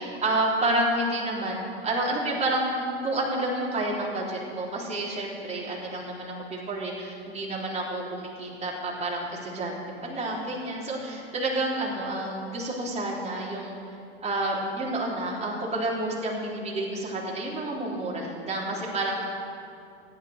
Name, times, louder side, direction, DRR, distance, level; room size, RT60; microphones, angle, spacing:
voice 1, 0.0-13.8 14.2-19.2, right 1 dB, 20° right, -4 dB, 3.7 m, -29 dB
15.5 x 9.6 x 6.6 m, 2.6 s
figure-of-eight pair, 80°, 31 cm